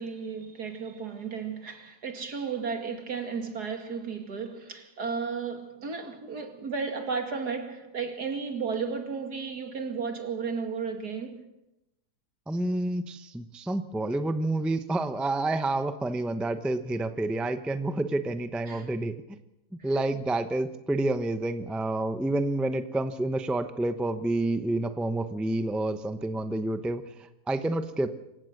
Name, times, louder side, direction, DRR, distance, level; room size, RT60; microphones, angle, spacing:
voice 1, 0.0-11.4 18.7-18.9 19.8-19.9, right 5 dB, 75° right, 2.8 m, -34 dB
voice 2, 12.5-19.1 19.8-28.1, right 2 dB, ahead, 0.6 m, -29 dB
26.5 x 16.0 x 6.6 m
omnidirectional pair, 1.7 m